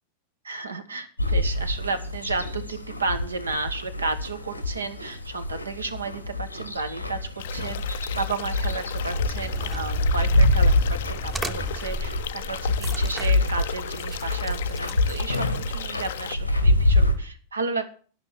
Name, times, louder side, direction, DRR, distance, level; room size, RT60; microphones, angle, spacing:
voice 1, 0.4-17.9, right 4 dB, 75° right, 9 dB, 1.2 m, -33 dB
sound 1, 1.2-17.1, left 1 dB, 90° left, 1.2 m, -26 dB
sound 2, 7.4-16.4, left 12 dB, 55° left, 0.5 m, -37 dB
sound 3, 9.2-15.5, right 1 dB, 10° right, 0.8 m, -36 dB
11.5 x 5.9 x 7.0 m, 0.42 s
figure-of-eight pair, 90°, 0 cm